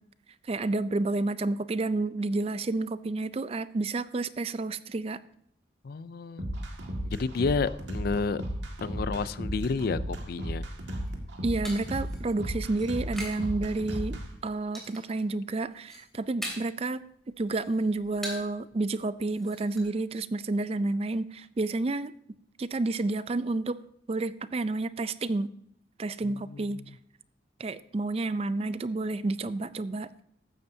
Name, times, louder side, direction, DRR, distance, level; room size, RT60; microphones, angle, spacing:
voice 1, 0.4-5.2 11.4-17.0 17.4-22.1 22.6-23.8 24.1-25.5 26.0-27.0 27.6-30.2, right 2 dB, 30° right, 15 dB, 0.4 m, -30 dB
voice 2, 5.8-6.5 7.0-8.4 8.8-10.6 26.5-26.8, left 4 dB, 50° left, 16 dB, 0.4 m, -30 dB
sound 1, 6.4-14.2, right 1 dB, 70° right, 1.9 m, -35 dB
sound 2, 10.9-13.5 13.8-14.3 14.7-15.2 15.6-16.8 17.2-18.6 18.9-19.0 19.3-19.8, equal, ahead, 2.9 m, -42 dB
14.5 x 11.0 x 2.7 m, 0.70 s
head